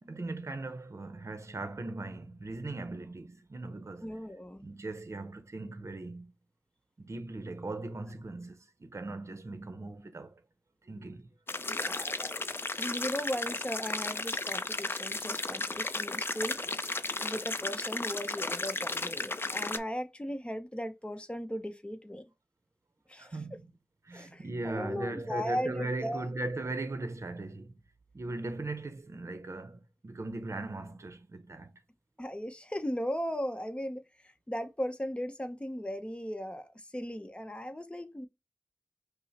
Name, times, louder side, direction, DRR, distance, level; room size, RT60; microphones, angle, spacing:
voice 1, 0.0-4.1 4.6-6.3 7.0-10.3 10.8-11.3 23.2-23.6 24.0-27.7 28.1-31.7, right 2 dB, 55° right, 0.7 m, -39 dB
voice 2, 4.0-4.7 11.6-12.4 12.8-16.6 17.2-22.2 23.1-23.4 24.1-26.3 32.2-38.3, equal, 20° left, 0.8 m, -37 dB
sound 1, 11.5-19.8, left 3 dB, 40° left, 0.5 m, -34 dB
5.4 x 2.1 x 4.1 m
wide cardioid pair, 55°, 6 cm